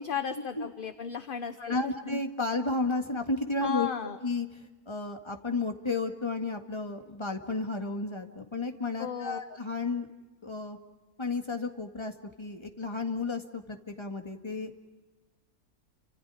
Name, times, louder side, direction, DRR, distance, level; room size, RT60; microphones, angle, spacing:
voice 1, 0.0-2.1 3.6-4.2 9.0-9.6, left 7 dB, 40° left, 9 dB, 1.0 m, -35 dB
voice 2, 1.6-3.9 4.2-10.1 10.4-10.8 11.2-14.7, left 3 dB, 20° left, 4 dB, 1.9 m, -32 dB
30.0 x 26.5 x 5.0 m, 1.2 s
omnidirectional pair, 1.6 m